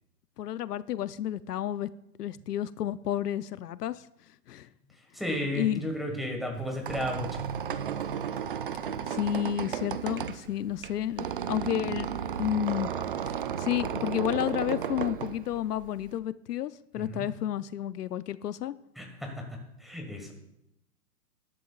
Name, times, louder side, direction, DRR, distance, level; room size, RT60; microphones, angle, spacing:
voice 1, 0.4-1.9 2.2-4.0 4.5-4.7 5.5-5.8 9.1-12.1 12.4-12.9 13.6-18.7, left 11 dB, 80° left, 15 dB, 0.7 m, -31 dB
voice 2, 5.1-7.5 16.9-17.3 19.0-20.3, left 1 dB, ahead, 1 dB, 1.4 m, -34 dB
Squeak, 6.5-16.2, right 8 dB, 40° right, 0.4 m, -34 dB
19.5 x 11.0 x 2.4 m, 0.83 s
hypercardioid pair, 145°, 47 cm